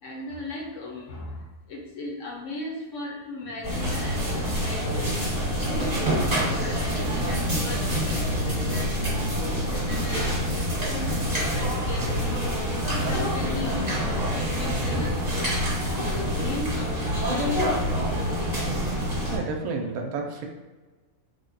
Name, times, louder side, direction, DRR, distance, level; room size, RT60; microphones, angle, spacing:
voice 1, 0.0-5.1 5.7-8.9 9.3-12.2 12.9-15.5 15.9-18.8, left 2 dB, 65° left, -2 dB, 1.0 m, -37 dB
sound 1, 3.6-19.4, equal, 30° right, 1.3 m, -26 dB
voice 2, 19.3-20.5, right 4 dB, 90° right, 2 dB, 1.0 m, -30 dB
3.5 x 2.1 x 3.8 m, 1.3 s
omnidirectional pair, 1.5 m